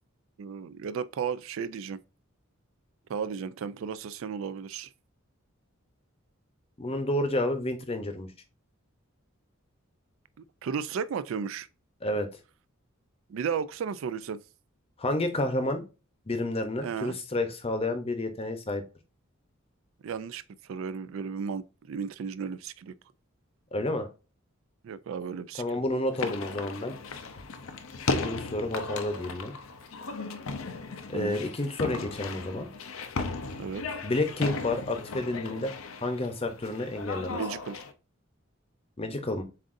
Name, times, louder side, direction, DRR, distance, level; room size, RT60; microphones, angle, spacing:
voice 1, 0.4-2.0 3.1-4.9 10.6-11.7 13.3-14.4 16.8-17.2 20.0-22.9 24.8-25.6 31.1-31.4 33.6-34.0 37.3-37.8, right 6 dB, 70° right, 0.3 m, -34 dB
voice 2, 6.8-8.3 12.0-12.3 15.0-15.8 16.3-18.8 23.7-24.1 25.6-26.9 28.2-29.5 31.1-32.7 34.0-35.7 36.0-37.4 39.0-39.4, left 1 dB, 30° left, 0.8 m, -30 dB
sound 1, 26.1-37.9, left 3 dB, 75° left, 0.6 m, -36 dB
7.3 x 2.6 x 2.5 m
head